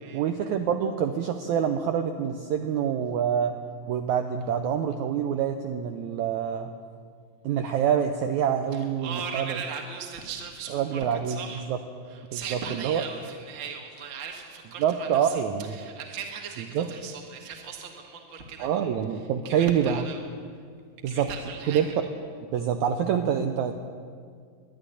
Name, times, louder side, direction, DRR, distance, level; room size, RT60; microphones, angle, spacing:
voice 1, 0.1-3.6 3.9-6.7 7.4-9.6 10.7-11.4 11.7-11.8 12.3-13.0 14.8-15.8 16.6-16.9 18.6-20.1 21.0-21.3 21.7-21.9 22.5-23.7, right 8 dB, 85° right, 6 dB, 1.7 m, -26 dB
voice 2, 8.7-11.7 12.1-15.4 15.7-18.9 19.4-20.2 21.1-21.8, right 6 dB, 65° right, 3 dB, 0.7 m, -38 dB
11.5 x 11.5 x 9.9 m, 2.1 s
omnidirectional pair, 4.1 m